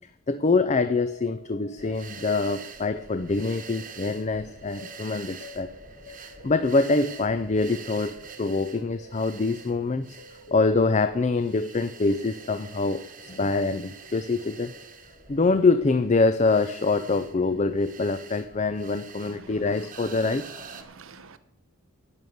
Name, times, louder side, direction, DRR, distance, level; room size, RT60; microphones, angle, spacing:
voice 1, 0.3-5.7 6.4-10.2 10.5-14.7 15.3-20.5, left 3 dB, 30° left, 0.4 m, -25 dB
sound 1, 0.7-15.5 16.1-16.6 16.9-17.1 18.1-18.3, left 2 dB, 60° left, 1.3 m, -50 dB
sound 2, 1.8-20.8, right 5 dB, 35° right, 1.1 m, -46 dB
voice 2, 19.2-19.7 20.0-20.1 20.7-21.4, right 4 dB, 65° right, 0.9 m, -47 dB
11.0 x 6.5 x 9.3 m
head